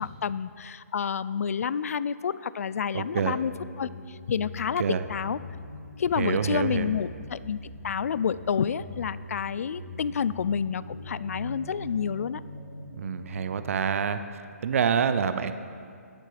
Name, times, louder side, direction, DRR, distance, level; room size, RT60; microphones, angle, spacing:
voice 1, 0.0-3.5 3.8-5.4 6.0-12.4, left 7 dB, 60° left, 17 dB, 0.3 m, -29 dB
voice 2, 2.9-3.4 4.8-5.0 6.2-6.9 13.0-14.2 14.6-15.5, right 7 dB, 55° right, 10 dB, 0.5 m, -26 dB
sound 1, 3.1-13.9, left 1 dB, 80° left, 2.3 m, -42 dB
16.0 x 7.4 x 3.4 m, 2.3 s
figure-of-eight pair, 140°, 9 cm